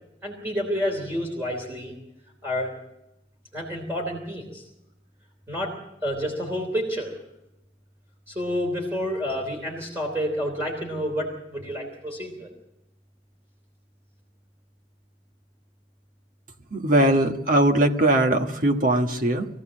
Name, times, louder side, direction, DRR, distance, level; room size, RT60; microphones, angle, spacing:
voice 1, 0.2-2.0 2.4-2.7 3.5-4.6 5.5-5.8 6.0-7.2 8.3-12.5, equal, 15° right, 0 dB, 3.4 m, -29 dB
voice 2, 16.7-19.5, right 1 dB, 50° right, 4 dB, 1.5 m, -20 dB
23.0 x 15.5 x 7.5 m, 0.89 s
head